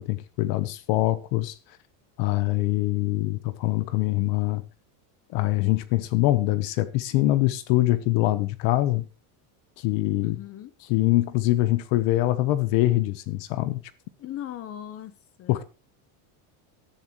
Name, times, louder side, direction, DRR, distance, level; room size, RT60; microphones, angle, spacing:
voice 1, 0.0-1.6 2.2-4.6 5.3-9.1 9.8-10.4 10.9-13.8 15.5-15.6, left 16 dB, 60° left, 1.1 m, -24 dB
voice 2, 10.2-10.7 14.2-15.6, left 11 dB, 30° left, 1.1 m, -38 dB
17.0 x 12.0 x 3.1 m
cardioid pair, 170°, 45 cm